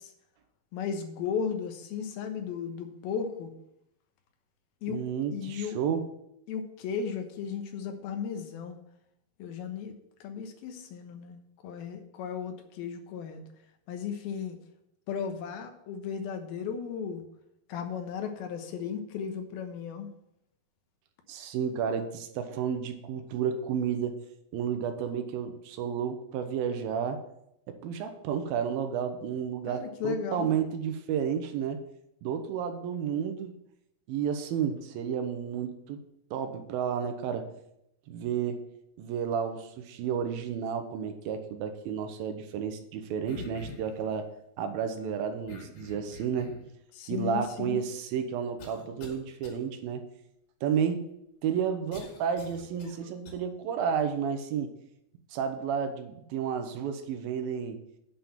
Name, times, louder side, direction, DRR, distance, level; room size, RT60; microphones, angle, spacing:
voice 1, 0.7-3.5 4.8-5.0 5.3-5.8 6.5-8.8 9.4-10.0 10.2-13.4 13.9-14.6 15.1-17.2 17.7-20.1 29.7-30.6 46.9-47.8, left 7 dB, 90° left, 6 dB, 3.0 m, -35 dB
voice 2, 4.9-6.1 21.3-24.2 24.5-27.2 27.7-31.8 32.2-33.5 34.1-36.0 36.3-37.5 38.1-38.7 39.0-44.3 44.6-46.5 47.1-50.0 50.6-51.1 51.4-54.7 55.3-57.8, right 7 dB, 85° right, 7 dB, 2.7 m, -31 dB
sound 1, 43.3-44.0 45.5-46.7 47.5-47.6 48.6-49.2 49.4-49.6 51.9-53.3, left 3 dB, 70° left, 4.0 m, -45 dB
8.5 x 5.7 x 7.5 m, 0.81 s
omnidirectional pair, 4.2 m